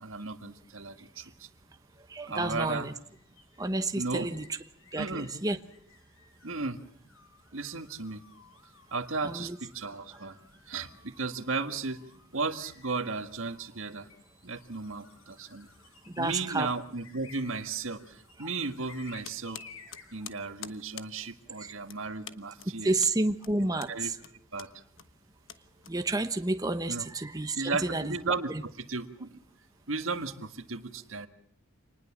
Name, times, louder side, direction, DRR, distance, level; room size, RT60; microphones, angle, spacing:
voice 1, 0.0-1.5 2.3-2.9 4.0-4.3 5.0-5.3 6.4-6.8 7.5-8.2 8.9-10.4 10.7-12.0 12.3-14.1 14.4-15.7 16.2-19.6 20.1-22.9 23.6-24.1 24.5-24.8 26.9-27.1 27.6-28.5 28.8-29.4 29.9-31.3, right 3 dB, 75° right, 8 dB, 1.7 m, -35 dB
voice 2, 2.1-2.9 3.6-4.6 4.9-5.6 9.2-9.6 16.2-16.7 18.4-18.5 21.6-21.7 22.8-24.2 25.9-28.2 28.5-28.6, right 2 dB, 20° right, 8 dB, 1.1 m, -30 dB
sound 1, 2.7-20.4, left 4 dB, 85° left, 4.1 m, -57 dB
sound 2, 19.2-26.4, left 10 dB, 70° left, 1.2 m, -48 dB
26.0 x 20.0 x 7.3 m, 0.64 s
head